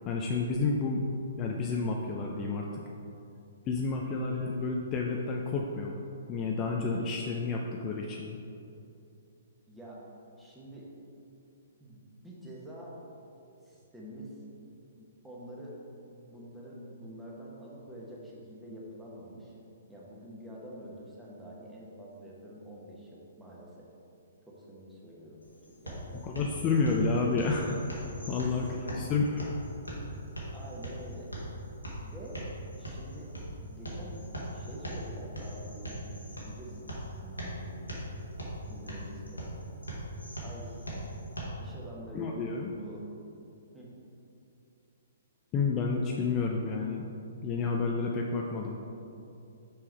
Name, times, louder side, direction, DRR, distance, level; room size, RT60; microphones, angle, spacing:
voice 1, 0.0-1.0 1.4-2.8 3.7-6.0 6.3-8.4 26.2-29.5 42.1-42.7 45.5-47.0 47.4-48.8, left 4 dB, 25° left, 0 dB, 0.5 m, -30 dB
voice 2, 9.7-10.0 10.4-10.9 11.8-12.9 13.6-14.3 15.0-15.7 16.2-19.5 19.9-23.9 24.4-25.4 25.7-26.5 28.2-28.4 28.8-29.1 30.5-31.3 32.0-32.4 32.8-33.3 33.7-34.2 34.5-35.9 36.3-36.9 37.2-37.9 38.7-39.5 40.4-40.9 41.6-43.1 43.7-43.9, right 1 dB, 5° right, -5 dB, 1.3 m, -47 dB
sound 1, 25.4-41.4, right 1 dB, 90° left, 1.5 m, -40 dB
6.0 x 4.7 x 4.6 m, 2.7 s
figure-of-eight pair, 125°, 0 cm